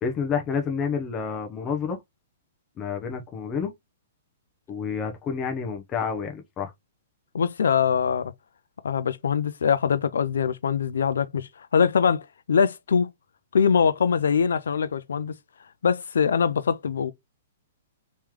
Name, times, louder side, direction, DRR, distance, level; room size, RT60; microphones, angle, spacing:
voice 1, 0.0-2.0 2.8-3.7 4.7-6.7, left 6 dB, 20° left, 0.7 m, -29 dB
voice 2, 7.3-8.3 8.8-13.1 13.5-15.3 15.8-17.1, left 6 dB, 90° left, 0.4 m, -23 dB
3.2 x 3.0 x 3.6 m
hypercardioid pair, 155°, 0 cm